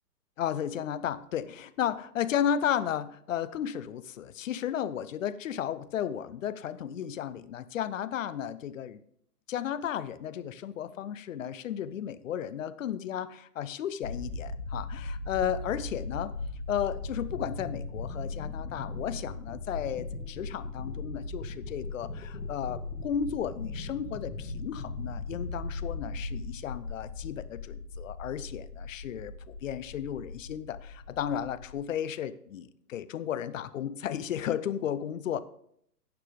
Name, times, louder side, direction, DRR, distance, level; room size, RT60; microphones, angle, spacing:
voice 1, 0.4-9.0 9.5-16.3 16.7-35.4, left 9 dB, 55° left, 15 dB, 0.7 m, -34 dB
sound 1, 14.0-31.8, left 3 dB, 75° left, 2.0 m, -38 dB
11.5 x 8.3 x 3.6 m, 0.69 s
figure-of-eight pair, 125°, 48 cm